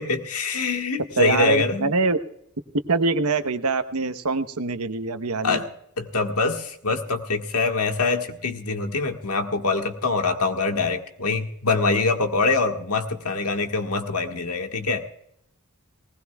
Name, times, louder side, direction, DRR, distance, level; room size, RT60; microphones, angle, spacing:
voice 1, 0.0-1.9 5.4-5.7 6.0-15.0, left 3 dB, 85° left, 5 dB, 1.6 m, -24 dB
voice 2, 1.2-2.2 2.9-5.6, right 3 dB, 85° right, 10 dB, 1.0 m, -24 dB
19.5 x 19.0 x 2.3 m, 0.73 s
head